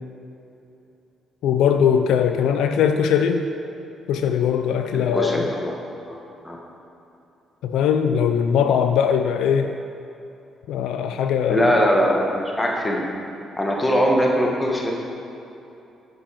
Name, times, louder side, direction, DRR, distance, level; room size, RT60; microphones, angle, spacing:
voice 1, 1.4-3.4 4.1-5.5 7.6-9.8 10.7-11.8, left 8 dB, 85° left, 7 dB, 0.4 m, -20 dB
voice 2, 4.9-5.7 6.0-6.2 6.4-6.6 11.5-13.0 13.6-14.9, equal, 15° left, -1 dB, 1.5 m, -21 dB
6.4 x 6.2 x 6.2 m, 2.8 s
cardioid pair, 90°, 0 cm